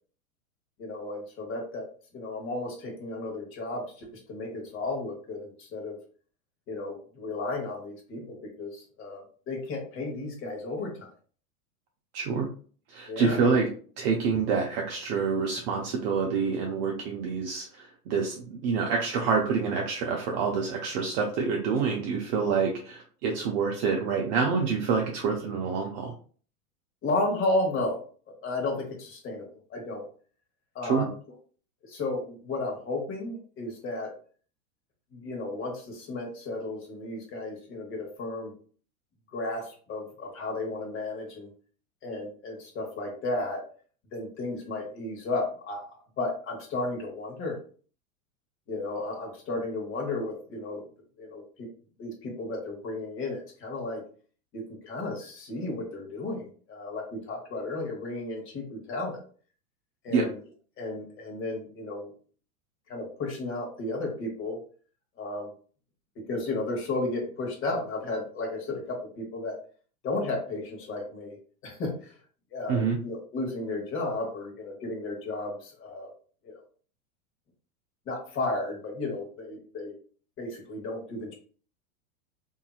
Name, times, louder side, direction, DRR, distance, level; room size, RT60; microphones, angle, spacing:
voice 1, 0.8-1.8 2.1-5.9 6.7-11.1 13.1-13.5 27.0-28.0 28.4-30.0 30.7-31.1 31.8-34.1 35.1-38.5 39.3-41.5 42.0-43.6 44.1-45.9 46.2-47.6 48.7-50.8 51.2-51.7 52.0-54.0 54.5-59.2 60.0-60.4 60.8-62.1 62.9-64.6 65.2-65.5 66.3-69.6 70.0-71.4 71.6-72.2 72.5-76.1 76.4-76.6 78.1-79.9 80.4-81.3, left 2 dB, 30° left, 0 dB, 1.1 m, -33 dB
voice 2, 12.1-12.4 12.9-13.7 14.0-26.1 30.9-31.0 60.1-60.3 72.7-73.0, right 5 dB, 45° right, 0 dB, 0.6 m, -27 dB
2.7 x 2.7 x 2.3 m, 0.43 s
hypercardioid pair, 115°, 44 cm